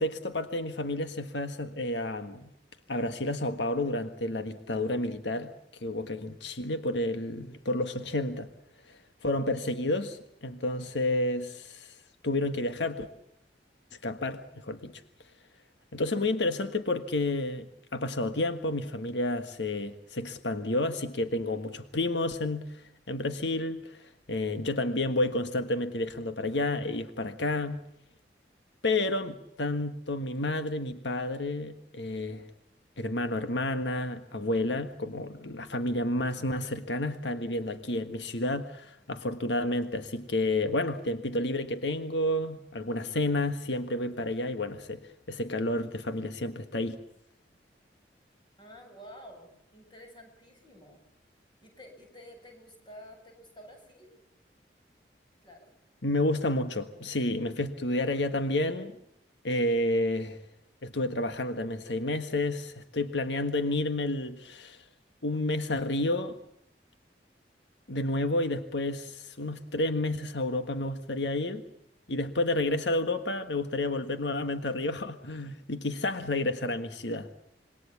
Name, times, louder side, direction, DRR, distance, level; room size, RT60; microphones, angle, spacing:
voice 1, 0.0-2.5 2.9-5.5 5.8-8.5 8.9-11.9 12.2-13.1 14.0-15.0 15.9-22.8 23.1-27.8 28.8-32.5 33.0-45.0 45.3-47.0 56.0-59.0 59.4-60.4 60.8-64.8 65.2-66.4 67.9-71.6 72.1-77.3, left 2 dB, 90° left, 1.6 m, -30 dB
voice 2, 48.6-51.0 51.6-54.2 55.4-55.7, equal, 25° left, 7.4 m, -50 dB
26.5 x 23.0 x 7.2 m
head